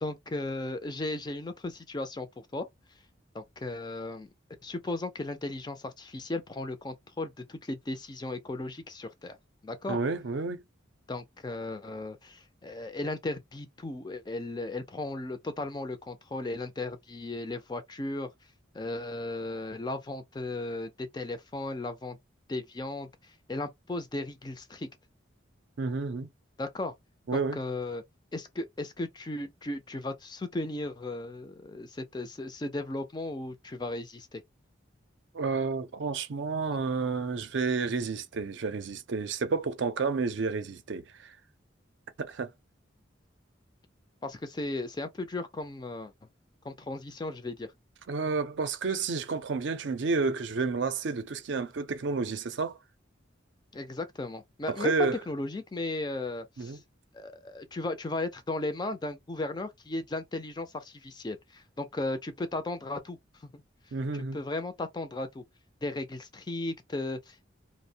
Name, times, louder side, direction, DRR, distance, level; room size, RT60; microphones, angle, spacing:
voice 1, 0.0-2.3 2.5-2.7 3.3-4.3 4.6-9.4 9.6-10.0 11.1-18.3 18.7-22.2 22.5-24.9 26.6-26.9 27.3-28.0 28.3-34.4 44.2-46.1 46.6-47.7 53.7-54.9 55.3-56.8 57.1-63.5 64.1-65.4 65.8-67.5, left 2 dB, 20° left, 0.3 m, -36 dB
voice 2, 9.9-10.6 25.8-26.3 27.3-27.6 35.3-41.3 42.2-42.5 48.1-52.8 54.7-55.2 56.6-56.8 63.9-64.4, right 4 dB, 65° right, 0.5 m, -30 dB
2.6 x 2.0 x 2.7 m
head